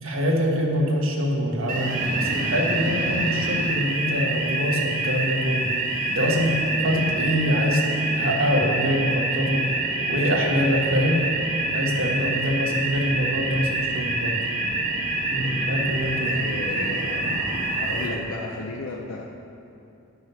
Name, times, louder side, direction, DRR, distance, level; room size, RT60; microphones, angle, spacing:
voice 1, 0.0-5.8 6.1-7.8 8.1-9.7 10.1-11.2 11.7-14.4 15.3-16.4, equal, 60° right, -2 dB, 1.7 m, -24 dB
sound 1, 1.7-18.1, right 2 dB, 40° right, 1.6 m, -26 dB
voice 2, 16.2-17.3 17.6-19.3, left 2 dB, 65° left, 0 dB, 0.7 m, -34 dB
9.8 x 7.8 x 5.8 m, 2.7 s
head